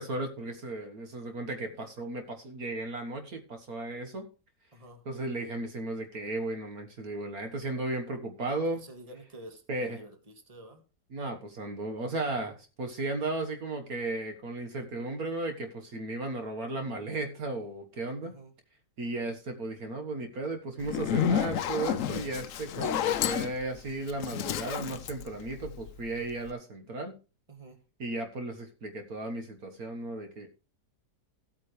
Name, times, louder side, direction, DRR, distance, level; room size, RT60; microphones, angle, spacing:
voice 1, 0.0-4.3 5.1-8.8 9.7-10.0 11.1-18.4 19.0-27.2 28.0-30.5, right 2 dB, 65° right, 6 dB, 2.0 m, -35 dB
voice 2, 4.7-5.0 8.6-10.8 18.2-18.5 27.5-27.8, right 1 dB, 20° right, 6 dB, 1.9 m, -49 dB
Zipper (clothing), 20.8-26.1, left 9 dB, 60° left, 0.9 m, -30 dB
15.5 x 8.7 x 3.3 m, 0.32 s
omnidirectional pair, 1.7 m